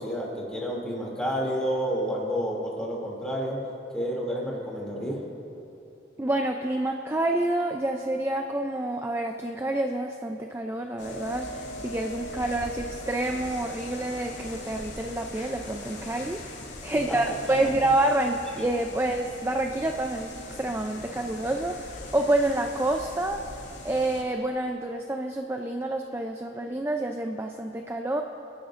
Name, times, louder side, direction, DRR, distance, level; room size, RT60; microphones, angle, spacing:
voice 1, 0.0-3.6 3.9-5.2 17.1-17.3 17.6-17.7, equal, 5° left, -4 dB, 2.7 m, -30 dB
voice 2, 6.2-16.6 16.8-23.4 23.8-28.2, right 1 dB, 15° right, 4 dB, 0.4 m, -28 dB
sound 1, 11.0-24.2, left 1 dB, 70° left, 2.4 m, -41 dB
27.5 x 11.5 x 2.6 m, 2.8 s
head